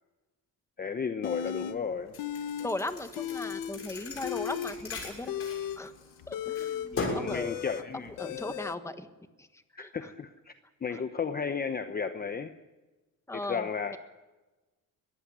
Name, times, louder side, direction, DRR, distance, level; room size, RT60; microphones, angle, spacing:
voice 1, 0.8-2.2 6.9-8.4 9.8-10.5 10.8-12.6 13.3-13.9, left 6 dB, 30° left, 9 dB, 0.9 m, -34 dB
sound 1, 1.2-1.8 2.2-2.7 3.0-3.8 4.1-8.8, left 10 dB, 90° left, 1.3 m, -36 dB
Thump thud, 2.1-6.2 6.6-7.4, left 3 dB, 45° left, 6.6 m, -38 dB
voice 2, 2.6-5.3 5.8-5.9 6.3-7.6 8.2-9.1 9.4-9.5 9.7-10.1 13.3-13.7, left 2 dB, 10° left, 9 dB, 1.4 m, -37 dB
22.5 x 15.0 x 9.9 m, 1.2 s
cardioid pair, 150°, 32 cm